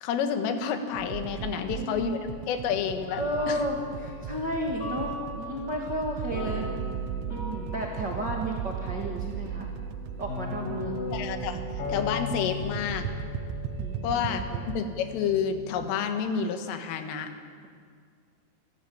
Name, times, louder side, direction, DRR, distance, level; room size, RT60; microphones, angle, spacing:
voice 1, 0.0-2.2 2.5-3.2 3.5-3.6 11.1-11.6 11.9-13.1 14.0-17.3, left 7 dB, 80° left, 7 dB, 4.1 m, -29 dB
sound 1, 0.9-14.8, right 9 dB, 85° right, 3.3 m, -37 dB
voice 2, 1.4-2.1 3.2-6.7 7.3-9.7 10.2-11.0 13.8-14.6, right 1 dB, 60° right, 0 dB, 1.1 m, -33 dB
sound 2, 2.6-16.0, left 4 dB, 55° left, 5.4 m, -38 dB
27.5 x 13.5 x 8.7 m, 2.1 s
omnidirectional pair, 5.7 m